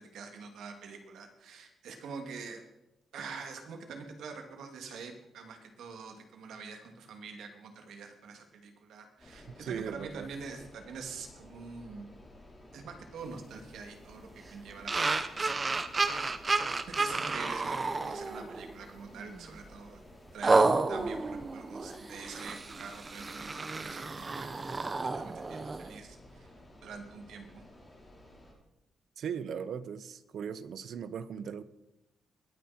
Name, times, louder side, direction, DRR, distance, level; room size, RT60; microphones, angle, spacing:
voice 1, 0.0-2.6 3.1-12.1 12.7-16.2 16.7-20.0 20.3-24.7 25.1-26.5 26.8-27.6, right 5 dB, 85° right, 4 dB, 2.4 m, -45 dB
sound 1, 9.2-28.5, left 1 dB, 15° left, 4.0 m, -54 dB
voice 2, 9.6-10.3 29.2-31.6, right 7 dB, 60° right, 15 dB, 0.7 m, -38 dB
sound 2, 14.9-18.7 19.2-19.4 20.4-26.0, right 3 dB, 25° right, 0.8 m, -31 dB
21.0 x 9.5 x 4.3 m, 0.93 s
wide cardioid pair, 155°, 0 cm